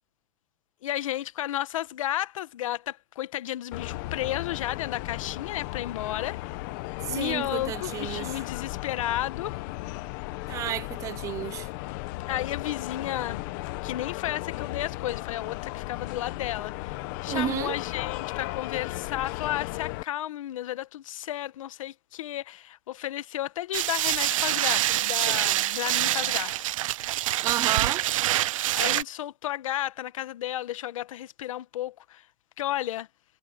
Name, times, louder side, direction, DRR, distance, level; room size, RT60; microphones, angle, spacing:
voice 1, 0.8-6.4 7.1-9.5 12.3-13.5 13.8-26.7 28.7-32.2 32.6-33.1, left 13 dB, 85° left, 1.2 m, -33 dB
sound 1, 3.7-20.0, left 20 dB, 40° left, 1.1 m, -35 dB
voice 2, 7.0-8.4 10.5-11.7 17.3-17.8 27.4-28.0, right 12 dB, 20° right, 0.5 m, -31 dB
sound 2, 23.7-29.0, right 14 dB, 85° right, 0.6 m, -26 dB
supercardioid pair, 175°, 17 cm